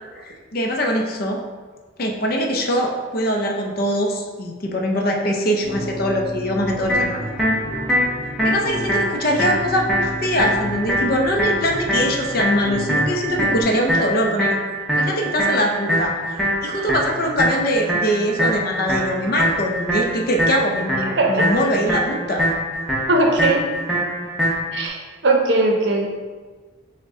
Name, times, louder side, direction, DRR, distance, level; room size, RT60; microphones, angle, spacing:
voice 1, 0.1-1.4 2.0-7.2 8.4-14.6 15.0-16.2 16.6-22.5, equal, 50° left, 2 dB, 0.5 m, -22 dB
sound 1, 5.6-13.6, equal, 30° right, 1.0 m, -32 dB
sound 2, 6.9-24.9, equal, ahead, 0.7 m, -23 dB
voice 2, 23.1-23.6 24.7-26.1, right 2 dB, 65° right, 1 dB, 0.6 m, -19 dB
6.1 x 2.2 x 3.6 m, 1.4 s
head